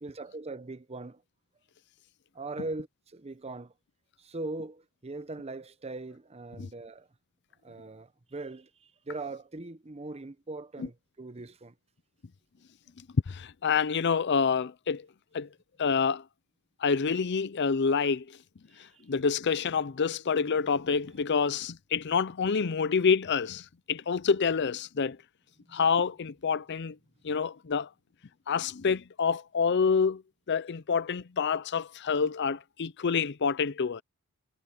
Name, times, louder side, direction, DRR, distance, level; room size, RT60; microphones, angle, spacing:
voice 1, 0.0-1.2 2.3-3.7 4.2-7.1 7.6-11.7 18.7-19.1 25.7-25.8, right 2 dB, 30° right, 0.8 m, -40 dB
voice 2, 13.3-15.0 15.3-15.5 15.8-16.2 16.8-18.3 19.1-25.2 25.7-27.0 27.2-27.9 28.5-30.2 30.5-34.0, left 5 dB, 50° left, 0.5 m, -27 dB
head